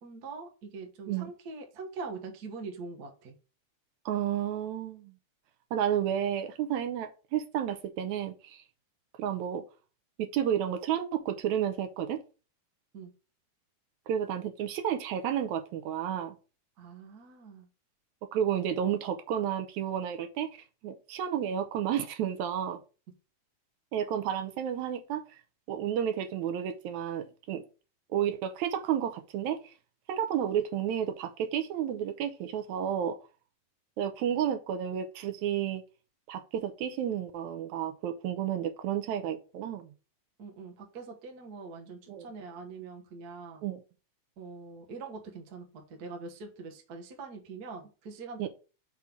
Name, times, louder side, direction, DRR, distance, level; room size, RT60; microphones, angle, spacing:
voice 1, 0.0-3.3 12.9-13.1 16.8-17.7 40.4-43.6 44.4-48.5, right 4 dB, 55° right, 1.1 m, -43 dB
voice 2, 4.1-5.1 5.7-8.6 9.2-9.6 10.2-12.2 14.1-16.3 18.3-20.5 20.8-22.8 23.9-25.2 25.7-27.6 28.1-29.7 30.1-33.2 34.0-35.8 36.3-39.9 42.1-42.3 43.6-43.8 48.4-48.5, right 9 dB, 80° right, 1.9 m, -31 dB
5.7 x 3.7 x 5.7 m
omnidirectional pair, 3.4 m